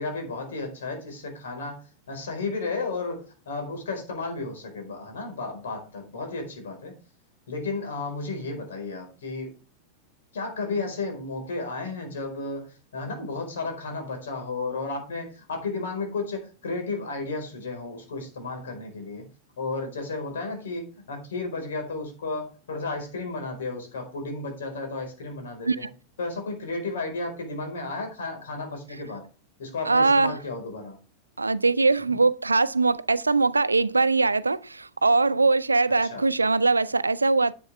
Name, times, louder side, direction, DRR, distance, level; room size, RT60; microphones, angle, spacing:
voice 1, 0.0-6.9 7.5-9.6 10.3-19.2 19.6-25.9 26.2-29.2 29.6-31.0 32.1-32.2 36.0-36.3, left 3 dB, 65° left, 4.5 m, -33 dB
voice 2, 29.9-30.4 31.4-37.5, right 3 dB, 80° right, 0.4 m, -22 dB
10.5 x 7.9 x 3.4 m
figure-of-eight pair, 90°, 0 cm